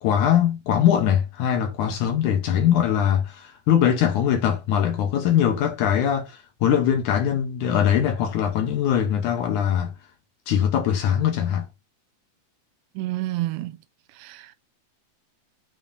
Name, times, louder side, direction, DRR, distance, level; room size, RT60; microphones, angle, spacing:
voice 1, 0.0-9.9 10.5-11.7, left 9 dB, 70° left, 2.0 m, -21 dB
voice 2, 13.0-13.8 14.2-14.6, right 17 dB, 85° right, 2.3 m, -29 dB
9.1 x 4.3 x 2.6 m
omnidirectional pair, 4.2 m